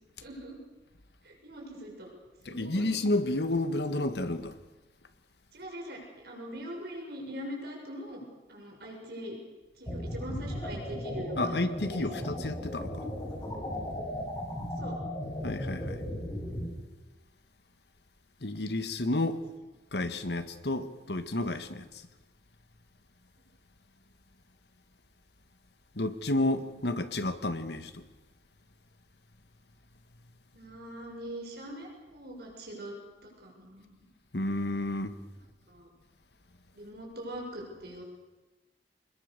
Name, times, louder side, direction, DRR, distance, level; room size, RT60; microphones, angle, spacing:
voice 1, 0.2-0.6 1.2-2.1 2.4-2.9 5.5-8.2 8.5-9.4 9.8-12.3 14.8-15.0 30.5-33.0 33.2-34.0 35.7-35.9 36.7-38.0, equal, 65° right, 6.6 m, -42 dB
voice 2, 2.5-4.6 11.4-13.1 15.4-16.0 18.4-19.4 19.9-22.0 26.0-28.0 34.3-35.2, left 2 dB, 70° left, 1.7 m, -31 dB
sound 1, 9.9-16.7, left 1 dB, 25° left, 5.9 m, -36 dB
25.0 x 21.0 x 6.8 m
head